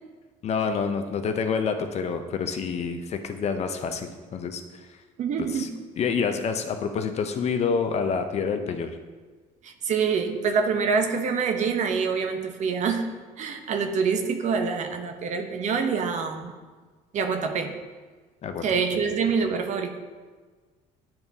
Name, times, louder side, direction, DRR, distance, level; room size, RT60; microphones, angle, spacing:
voice 1, 0.4-4.6 4.9-5.0 5.4-5.7 6.0-9.0 18.4-18.6, left 5 dB, 45° left, 7 dB, 0.6 m, -27 dB
voice 2, 5.2-5.7 9.6-13.1 13.4-16.5 17.1-17.8 18.6-20.0, right 5 dB, 50° right, 6 dB, 0.7 m, -26 dB
10.0 x 3.4 x 2.7 m, 1.4 s
supercardioid pair, 85°, 15 cm